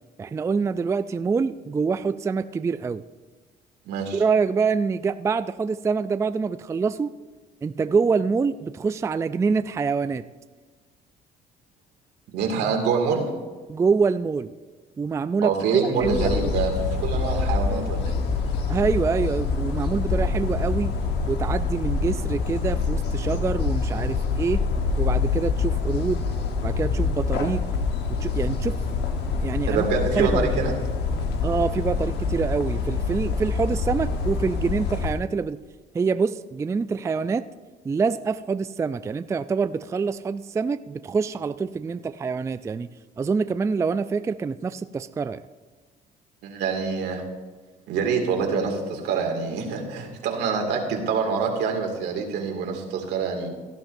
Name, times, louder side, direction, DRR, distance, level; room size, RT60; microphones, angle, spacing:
voice 1, 0.2-3.0 4.1-7.1 7.6-10.2 13.7-14.5 15.0-16.6 18.7-20.9 21.3-24.6 25.0-26.2 26.6-27.6 28.1-28.8 29.4-29.9 30.1-30.6 31.4-35.6 35.9-37.4 37.9-42.9 43.2-45.4, right 5 dB, 15° right, 11 dB, 0.3 m, -25 dB
voice 2, 3.9-4.2 12.3-13.3 15.4-18.2 29.7-30.7 46.4-47.2 47.9-53.5, right 5 dB, 80° right, 2 dB, 2.3 m, -26 dB
sound 1, 16.0-35.2, left 4 dB, 80° left, 1.2 m, -26 dB
17.5 x 11.5 x 2.6 m, 1.3 s
cardioid pair, 110°, 17 cm